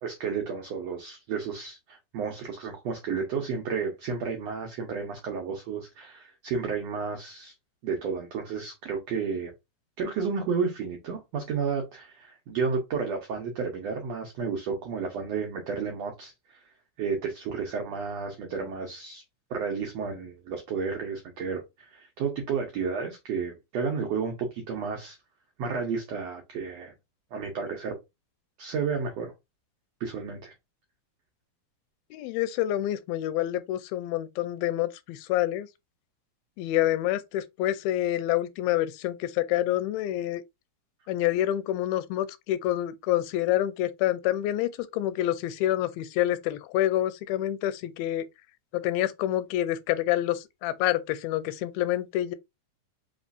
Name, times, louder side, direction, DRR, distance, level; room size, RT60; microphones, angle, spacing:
voice 1, 0.0-7.5 7.8-9.5 10.0-16.6 17.0-19.2 19.5-25.2 25.6-26.9 27.3-28.0 28.6-29.3 30.0-30.5, right 5 dB, 90° right, 1.4 m, -32 dB
voice 2, 32.1-35.7 36.6-40.4 41.1-48.3 48.7-52.3, left 13 dB, 85° left, 2.4 m, -27 dB
5.4 x 3.1 x 2.5 m
omnidirectional pair, 4.1 m